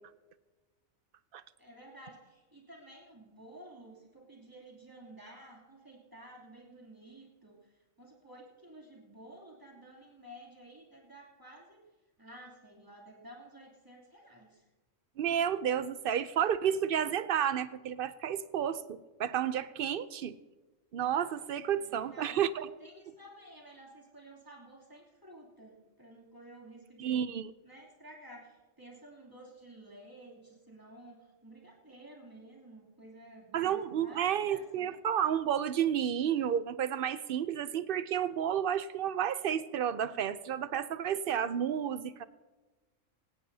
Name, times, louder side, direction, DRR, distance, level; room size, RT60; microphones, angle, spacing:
voice 1, 1.6-11.8 12.2-14.7 21.8-22.5 22.8-27.2 27.6-34.9, right 1 dB, 15° right, -3 dB, 3.0 m, -53 dB
voice 2, 15.2-20.3 20.9-22.7 27.0-27.5 33.5-42.2, right 9 dB, 60° right, 14 dB, 0.6 m, -31 dB
17.5 x 17.0 x 2.8 m, 1.2 s
omnidirectional pair, 1.3 m